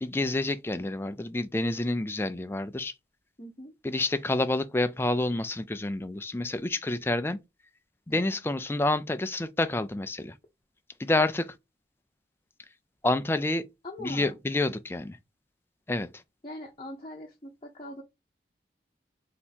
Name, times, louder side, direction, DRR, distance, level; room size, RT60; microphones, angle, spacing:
voice 1, 0.0-2.9 3.8-7.4 8.1-10.3 11.0-11.5 13.0-13.7 14.0-15.2 15.9-16.1, left 2 dB, 15° left, 0.4 m, -28 dB
voice 2, 3.4-3.7 8.1-8.4 13.8-14.4 16.4-18.0, left 1 dB, 30° left, 0.8 m, -42 dB
3.5 x 2.8 x 4.3 m
head